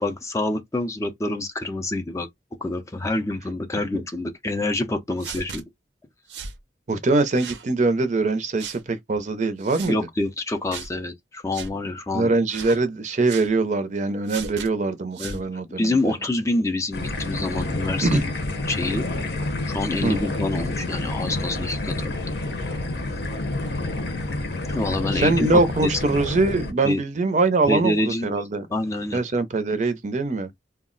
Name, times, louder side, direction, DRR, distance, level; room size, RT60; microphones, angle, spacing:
voice 1, 0.0-2.3 2.6-5.6 9.9-12.3 15.2-15.4 15.8-18.3 18.7-19.0 19.7-22.1 24.7-26.2 26.8-27.0 27.7-28.3 28.7-29.2, left 2 dB, 15° left, 0.4 m, -27 dB
sound 1, 5.2-5.6 6.3-6.6 7.3-7.7 8.6-8.8 9.6-9.9 10.7-10.9 11.5-11.7 12.5-12.8 13.3-13.5 14.3-14.7 15.1-15.4, right 6 dB, 85° right, 0.6 m, -36 dB
voice 2, 6.9-10.0 12.1-16.1 18.0-18.2 20.0-20.2 25.1-28.7 29.1-30.5, right 3 dB, 40° right, 0.5 m, -23 dB
sound 2, 16.9-26.7, left 2 dB, 65° left, 0.7 m, -28 dB
2.3 x 2.1 x 3.7 m
head